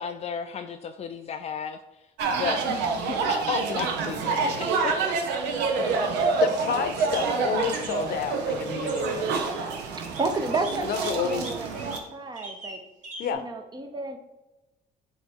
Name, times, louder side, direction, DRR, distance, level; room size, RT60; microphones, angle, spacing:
voice 1, 0.0-1.8 2.3-3.0 3.3-5.0 5.3-5.4, left 6 dB, 40° left, 6 dB, 0.4 m, -33 dB
sound 1, 2.2-12.0, right 4 dB, 90° right, 0.9 m, -27 dB
voice 2, 6.4-9.4 10.8-11.5 13.2-13.4, left 7 dB, 60° left, 8 dB, 0.8 m, -30 dB
sound 2, 6.4-6.6 7.7-7.9 8.9-9.1 10.0-10.2 10.5-12.0 12.3-12.8 13.0-13.3, right 2 dB, 50° right, 1.8 m, -40 dB
voice 3, 10.0-12.8 13.3-14.2, right 3 dB, 25° right, 6 dB, 0.8 m, -31 dB
7.9 x 3.0 x 4.5 m, 1.0 s
cardioid pair, 110°, 17 cm